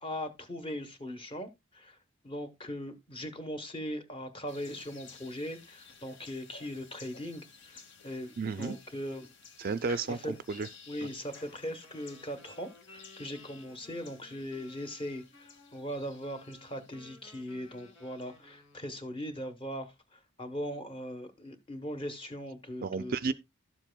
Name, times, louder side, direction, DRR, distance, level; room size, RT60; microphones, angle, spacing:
voice 1, 0.0-2.0 2.2-8.3 8.6-9.3 10.1-10.3 10.9-23.2, equal, 25° left, 1.0 m, -40 dB
sound 1, 4.5-18.5, left 4 dB, 55° left, 1.1 m, -54 dB
voice 2, 8.4-8.8 9.6-10.7 11.0-11.1 22.8-23.3, right 4 dB, 45° right, 0.4 m, -32 dB
Wind instrument woodwind instrument, 11.2-19.2, left 3 dB, 75° left, 2.0 m, -58 dB
12.5 x 7.4 x 2.2 m
head